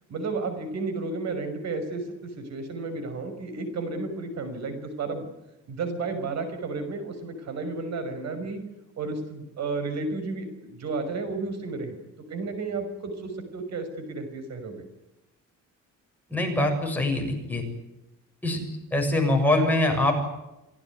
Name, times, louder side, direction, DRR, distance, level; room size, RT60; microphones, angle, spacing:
voice 1, 0.1-5.3 5.7-8.6 9.0-12.0 12.3-14.8, right 3 dB, 60° right, 8 dB, 5.9 m, -32 dB
voice 2, 16.3-17.6 18.4-18.6 18.9-20.1, left 1 dB, 5° left, 1 dB, 7.2 m, -23 dB
28.0 x 17.5 x 9.6 m, 0.94 s
cardioid pair, 145°, 30 cm